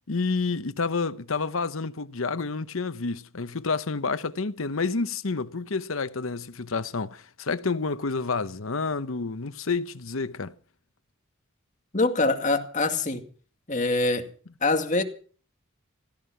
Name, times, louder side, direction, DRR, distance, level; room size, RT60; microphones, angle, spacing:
voice 1, 0.1-10.5, left 4 dB, 90° left, 0.9 m, -29 dB
voice 2, 11.9-13.2 13.7-14.3 14.6-15.0, left 3 dB, 35° left, 2.3 m, -24 dB
16.5 x 14.5 x 5.9 m
head